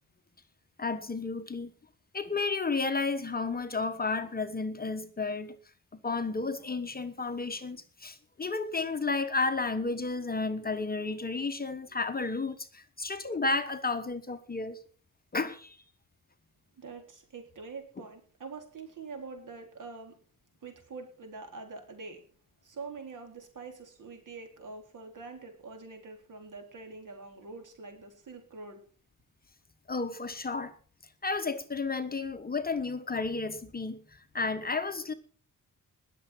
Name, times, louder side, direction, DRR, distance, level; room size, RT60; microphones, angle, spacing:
voice 1, 0.8-1.7 2.1-5.5 5.9-14.8 15.3-15.8 29.9-30.7 31.2-35.1, left 3 dB, 25° left, 1.1 m, -32 dB
voice 2, 16.7-20.1 20.6-22.3 22.6-28.8, right 4 dB, 60° right, 4.1 m, -45 dB
20.0 x 7.2 x 6.0 m
wide cardioid pair, 130°, 34 cm